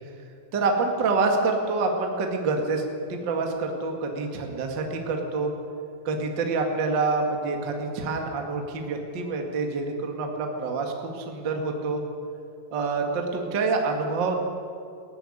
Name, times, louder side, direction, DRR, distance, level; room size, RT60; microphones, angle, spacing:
voice 1, 0.5-2.8 3.1-5.5 6.0-12.0 12.7-14.4, right 3 dB, 90° right, 3 dB, 1.0 m, -27 dB
18.0 x 15.5 x 9.9 m, 2.5 s
omnidirectional pair, 5.7 m